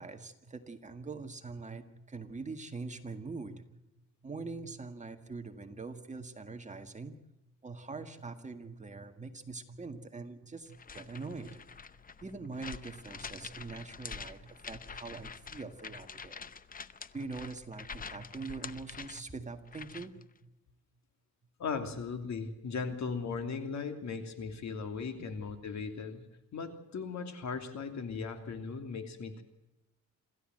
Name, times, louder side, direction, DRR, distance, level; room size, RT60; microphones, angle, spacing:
voice 1, 0.0-3.6 4.2-7.1 7.6-11.6 12.2-16.5 17.1-20.5, right 3 dB, 20° right, 6 dB, 1.9 m, -43 dB
sound 1, 10.7-20.2, left 5 dB, 25° left, 0.8 m, -46 dB
voice 2, 21.6-26.2 26.5-29.4, left 5 dB, 60° left, 7 dB, 3.0 m, -38 dB
27.5 x 14.0 x 7.8 m, 0.97 s
cardioid pair, 120°, 32 cm